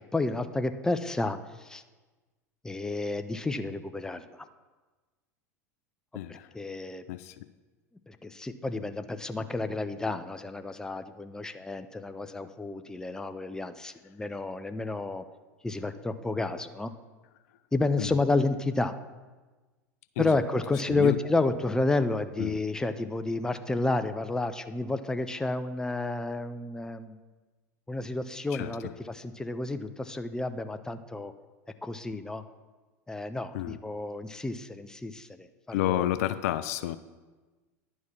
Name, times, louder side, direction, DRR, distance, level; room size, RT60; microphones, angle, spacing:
voice 1, 0.0-1.8 2.6-4.4 6.3-7.0 8.1-15.2 15.6-16.9 17.7-18.9 20.2-27.2 27.9-31.3 31.8-32.4 33.1-36.1, left 2 dB, 5° left, 10 dB, 0.5 m, -31 dB
voice 2, 6.1-6.5 7.1-7.5 18.0-18.1 20.2-20.4 20.9-21.2 22.4-22.6 28.5-28.7 33.5-33.8 35.7-37.0, left 13 dB, 65° left, 13 dB, 0.4 m, -30 dB
11.0 x 4.8 x 5.6 m, 1.3 s
hypercardioid pair, 85°, 9 cm